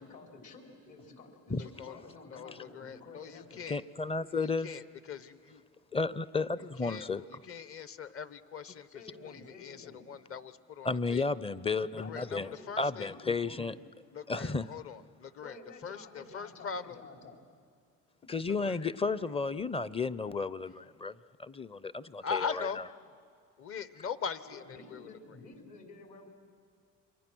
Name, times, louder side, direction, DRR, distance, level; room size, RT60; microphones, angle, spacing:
voice 1, 0.0-3.6 8.9-10.1 12.0-13.9 15.4-17.4 24.5-26.3, left 3 dB, 60° left, 2 dB, 4.5 m, -51 dB
voice 2, 1.6-2.0 2.3-3.8 4.3-5.6 6.8-11.2 12.1-13.1 14.1-15.6 15.8-17.0 18.5-18.8 22.2-22.8 23.6-25.4, left 6 dB, 40° left, 15 dB, 1.1 m, -41 dB
voice 3, 3.7-4.7 5.9-7.4 10.8-12.5 12.8-13.7 14.3-14.7 18.3-22.7, left 4 dB, 15° left, 18 dB, 0.6 m, -33 dB
29.0 x 24.0 x 6.3 m, 2.1 s
supercardioid pair, 90°, 34 cm